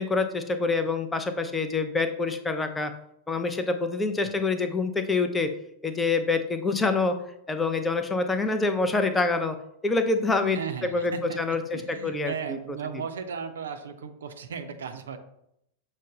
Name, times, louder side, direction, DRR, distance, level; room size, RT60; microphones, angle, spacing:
voice 1, 0.0-2.9 3.3-5.5 5.8-7.1 7.5-9.6 9.8-10.6 10.9-12.3, left 3 dB, 10° left, 8 dB, 0.5 m, -26 dB
voice 2, 10.5-15.2, right 6 dB, 65° right, 7 dB, 0.4 m, -36 dB
6.3 x 2.1 x 3.8 m, 0.76 s
figure-of-eight pair, 90°, 0 cm